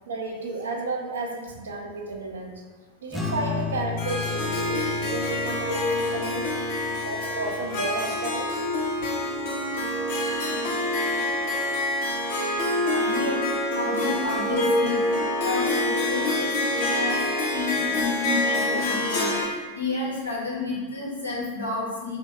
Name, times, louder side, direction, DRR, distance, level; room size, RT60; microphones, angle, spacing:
voice 1, 0.1-2.6 3.0-6.5 7.0-8.5 9.7-10.0, right 2 dB, 70° right, 1 dB, 0.6 m, -32 dB
sound 1, 3.1-9.8, left 6 dB, 5° left, 0.6 m, -35 dB
Harp, 4.0-19.5, left 1 dB, 50° left, 0.9 m, -26 dB
voice 2, 12.9-13.4 13.7-17.2 17.5-19.5 19.7-22.2, left 3 dB, 85° left, -5 dB, 1.1 m, -30 dB
3.0 x 3.0 x 4.4 m, 1.4 s
figure-of-eight pair, 90°, 0 cm